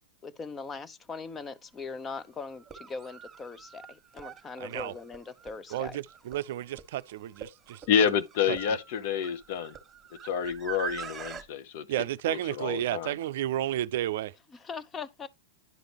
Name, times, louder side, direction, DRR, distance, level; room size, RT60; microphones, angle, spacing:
voice 1, 0.2-6.0 14.5-15.3, left 4 dB, 20° left, 0.8 m, -40 dB
sound 1, 1.4-1.5 2.5-11.4, right 8 dB, 20° right, 1.5 m, -44 dB
voice 2, 4.6-4.9 5.7-7.8 8.5-8.6 11.9-14.3, right 13 dB, 60° right, 0.5 m, -32 dB
voice 3, 7.9-9.7 10.2-11.9 12.3-13.1, left 7 dB, 55° left, 0.8 m, -28 dB
10.5 x 5.1 x 3.0 m
hypercardioid pair, 100°, 0 cm